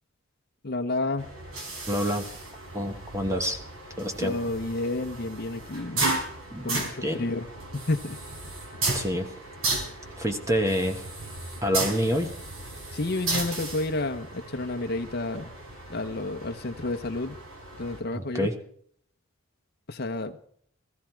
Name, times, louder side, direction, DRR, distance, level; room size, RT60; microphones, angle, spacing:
voice 1, 0.6-1.3 4.2-6.0 6.6-7.5 7.7-8.2 12.9-15.5 15.9-17.4 17.8-18.5 19.9-20.5, left 2 dB, 50° left, 6 dB, 0.8 m, -30 dB
sound 1, 1.2-18.0, right 2 dB, 75° right, 4.2 m, -35 dB
voice 2, 1.9-2.2 2.7-3.6 4.0-4.3 6.5-6.7 7.0-7.3 8.9-9.3 10.2-11.1 11.6-12.3 18.1-18.5, equal, 15° right, 5 dB, 1.3 m, -27 dB
17.0 x 14.5 x 4.5 m, 0.62 s
head